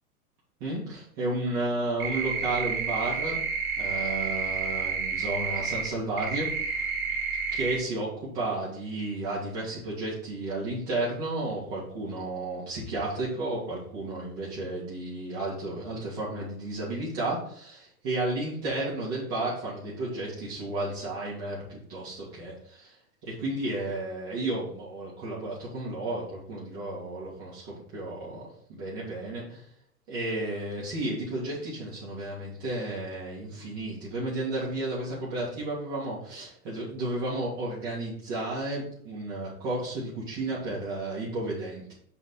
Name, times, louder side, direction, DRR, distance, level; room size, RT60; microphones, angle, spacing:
voice 1, 0.6-3.4 3.8-6.5 6.8-6.9 7.5-22.9 23.2-29.6 30.1-41.9, right 2 dB, 45° right, -7 dB, 2.9 m, -32 dB
sound 1, 2.0-5.9 6.2-7.8, right 5 dB, 70° right, 2.2 m, -30 dB
5.7 x 5.5 x 4.3 m, 0.63 s
hypercardioid pair, 110°, 45 cm